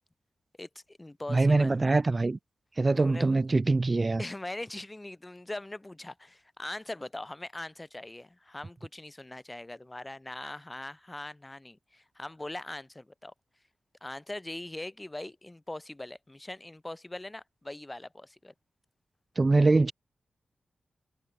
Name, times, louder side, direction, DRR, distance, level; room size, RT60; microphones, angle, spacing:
voice 1, 0.6-1.8 3.0-3.4 4.2-13.3 14.0-18.5, left 1 dB, 15° left, 6.6 m, -41 dB
voice 2, 1.3-2.4 2.8-4.2 19.4-19.9, right 3 dB, 30° right, 1.3 m, -23 dB
wide cardioid pair, 110°, 0 cm